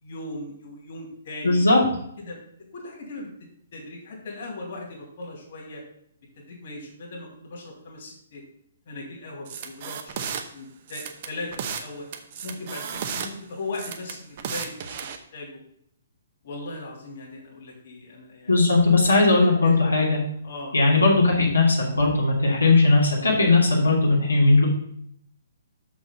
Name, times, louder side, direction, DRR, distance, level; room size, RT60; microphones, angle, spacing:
voice 1, 0.0-1.7 2.2-2.4 2.7-3.3 3.7-5.8 6.4-8.4 8.9-12.1 12.4-15.6 16.4-18.8 19.4-19.8 20.4-20.7 21.3-21.5, left 2 dB, 55° left, -2 dB, 2.9 m, -38 dB
voice 2, 1.4-1.8 18.5-20.2 20.7-24.7, left 3 dB, 90° left, -4 dB, 2.5 m, -18 dB
sound 1, 9.5-10.4 10.9-11.9 12.1-13.3 13.7-15.2, right 7 dB, 45° right, 0.9 m, -33 dB
6.5 x 6.1 x 5.3 m, 0.69 s
figure-of-eight pair, 130°, 0 cm